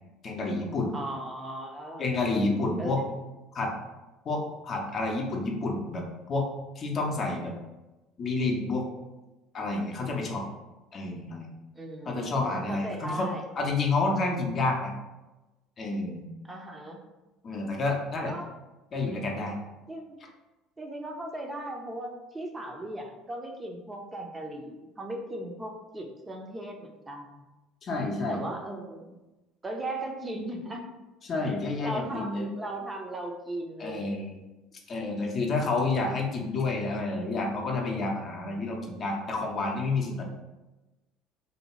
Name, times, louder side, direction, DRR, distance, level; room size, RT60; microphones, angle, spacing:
voice 1, 0.2-0.9 2.0-3.0 3.5-3.7 4.2-6.5 6.8-7.5 8.2-8.9 9.5-10.4 10.9-11.5 12.1-13.3 13.6-14.9 15.8-16.2 17.4-18.3 18.9-19.6 27.8-28.4 31.2-32.5 33.8-34.4 34.9-40.2, left 3 dB, 45° left, 1 dB, 0.5 m, -29 dB
voice 2, 0.9-2.0 2.8-3.1 11.7-13.5 16.5-17.0 18.3-18.5 19.9-20.2 20.8-27.4 28.3-29.2 29.6-30.8 31.4-34.1, right 1 dB, 20° right, 1 dB, 0.5 m, -37 dB
2.6 x 2.2 x 3.0 m, 1.1 s
hypercardioid pair, 65°, 0 cm